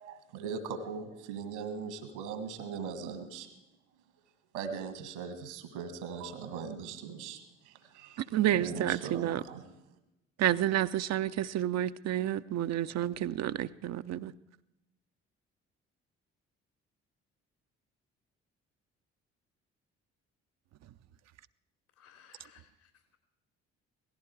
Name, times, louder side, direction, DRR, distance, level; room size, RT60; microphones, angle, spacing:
voice 1, 0.0-3.5 4.5-7.4 7.7-8.2 8.5-9.8, right 6 dB, 80° right, 1.9 m, -40 dB
voice 2, 8.3-9.4 10.4-14.3, right 12 dB, 50° right, 0.6 m, -30 dB
voice 3, 22.0-23.2, left 8 dB, 75° left, 3.3 m, -60 dB
17.5 x 15.5 x 4.7 m
figure-of-eight pair, 45°, 34 cm